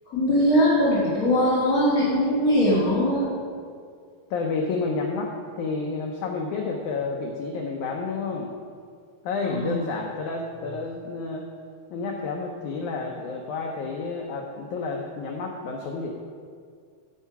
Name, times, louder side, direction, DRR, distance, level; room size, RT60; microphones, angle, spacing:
voice 1, 0.0-3.3 9.4-9.8, equal, 35° left, -8 dB, 1.5 m, -21 dB
voice 2, 4.3-8.5 9.2-11.5 11.9-16.1, left 4 dB, 85° left, 1 dB, 1.7 m, -30 dB
15.5 x 5.6 x 5.8 m, 2.2 s
omnidirectional pair, 4.6 m